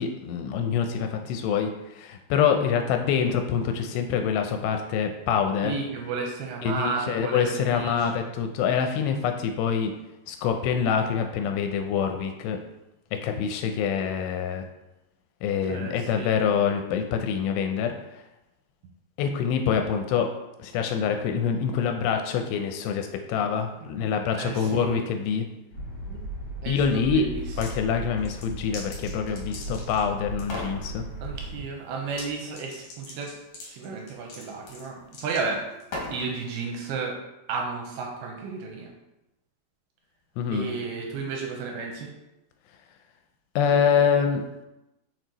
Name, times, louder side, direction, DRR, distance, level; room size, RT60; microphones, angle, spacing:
voice 1, 0.0-5.7 6.6-9.9 10.3-12.6 13.1-14.7 15.4-18.2 19.2-20.3 20.6-25.5 26.7-27.2 27.6-31.1 40.4-40.7 43.6-44.7, left 7 dB, 85° left, 5 dB, 2.6 m, -25 dB
voice 2, 5.6-8.1 8.8-9.0 15.7-16.3 23.8-23.9 24.4-25.1 26.1-26.2 26.6-27.6 31.2-33.3 33.6-35.6 36.1-37.2 37.5-38.9 40.5-42.1, right 4 dB, 80° right, 1 dB, 2.4 m, -33 dB
sound 1, 25.7-31.6, right 1 dB, 40° left, 2.0 m, -36 dB
sound 2, 27.4-27.8 28.2-30.1 30.4-30.8 32.1-32.3 32.5-36.3, left 2 dB, 55° left, 2.0 m, -39 dB
6.3 x 4.6 x 3.9 m, 0.95 s
omnidirectional pair, 5.0 m